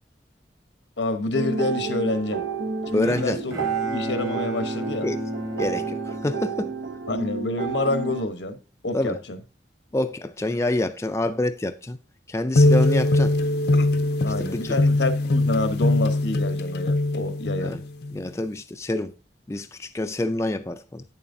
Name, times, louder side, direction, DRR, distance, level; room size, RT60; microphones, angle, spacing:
voice 1, 1.0-2.4 2.9-3.5 3.9-5.1 7.1-8.6 8.8-9.4 14.2-17.8, left 2 dB, 90° left, 1.0 m, -27 dB
sound 1, 1.3-8.3, right 5 dB, 80° right, 0.7 m, -30 dB
voice 2, 2.9-3.4 5.0-5.2 5.6-6.7 8.9-9.2 9.9-12.0 12.3-13.3 14.4-14.8 17.6-17.8 18.1-19.1 19.5-21.0, left 1 dB, 15° left, 0.4 m, -27 dB
Bowed string instrument, 3.0-7.3, right 1 dB, 20° right, 1.2 m, -33 dB
sound 2, 12.5-18.2, left 2 dB, 65° left, 0.6 m, -21 dB
8.6 x 7.1 x 2.6 m
head